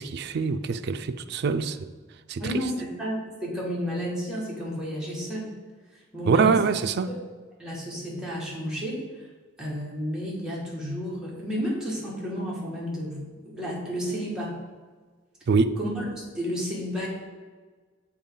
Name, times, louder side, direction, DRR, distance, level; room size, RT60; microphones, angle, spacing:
voice 1, 0.0-1.9 2.3-2.5 6.3-7.1 15.5-15.8, right 5 dB, 55° right, 0.4 m, -24 dB
voice 2, 2.4-5.5 6.1-6.6 7.1-7.2 7.6-9.3 9.6-14.6 15.7-16.0 16.3-17.1, equal, 5° right, 1.6 m, -31 dB
7.0 x 4.6 x 3.7 m
head